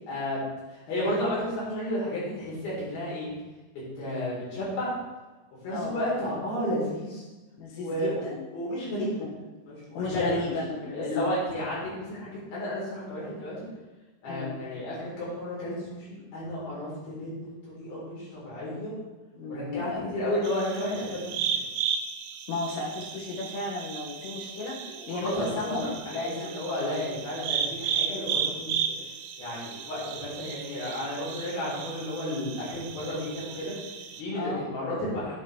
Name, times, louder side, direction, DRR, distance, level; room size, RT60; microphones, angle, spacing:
voice 1, 0.1-3.3 4.0-4.9 5.6-7.3 7.8-8.3 8.5-9.1 9.6-13.7 14.2-18.9 19.5-21.7 24.8-28.7 29.4-35.4, left 1 dB, 50° left, -7 dB, 5.2 m, -32 dB
voice 2, 7.6-8.4 9.0-9.3 10.0-11.3 14.3-14.5 19.4-20.1 22.5-26.5 34.4-34.7, left 3 dB, 85° left, -3 dB, 4.3 m, -34 dB
sound 1, 20.4-34.2, right 7 dB, 85° right, 3.1 m, -34 dB
9.3 x 9.0 x 3.2 m, 1.2 s
omnidirectional pair, 5.7 m